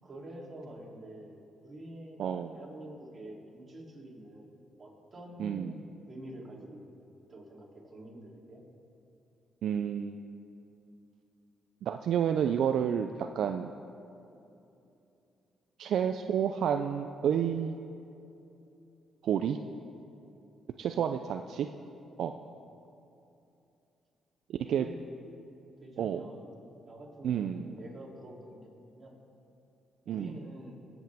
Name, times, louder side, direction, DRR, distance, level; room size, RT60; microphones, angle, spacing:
voice 1, 0.0-7.0 7.3-8.6 20.9-21.1 24.5-25.0 25.8-26.5 26.8-28.7 29.0-29.1 30.0-30.7, right 1 dB, 35° right, -4 dB, 2.9 m, -47 dB
voice 2, 2.2-2.5 5.4-5.8 9.6-10.3 11.8-13.7 15.8-17.8 19.2-19.6 20.8-21.7 22.2-22.3 24.7-24.9 26.0-26.2 27.2-27.8 30.1-30.4, right 8 dB, 70° right, 7 dB, 0.4 m, -30 dB
21.5 x 8.0 x 3.5 m, 2.8 s
cardioid pair, 90°, 0 cm